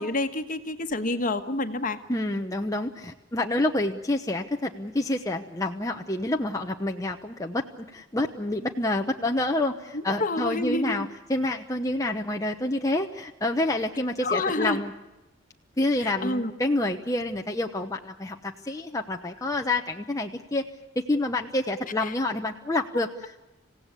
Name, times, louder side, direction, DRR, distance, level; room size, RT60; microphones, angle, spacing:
voice 1, 0.0-2.0 9.9-11.1 14.2-14.8 16.0-16.5 22.0-22.1, left 2 dB, 45° left, 8 dB, 1.5 m, -28 dB
voice 2, 2.1-14.9 15.8-20.6 21.1-23.4, left 2 dB, 15° left, 3 dB, 0.9 m, -28 dB
27.0 x 17.0 x 8.4 m, 1.0 s
head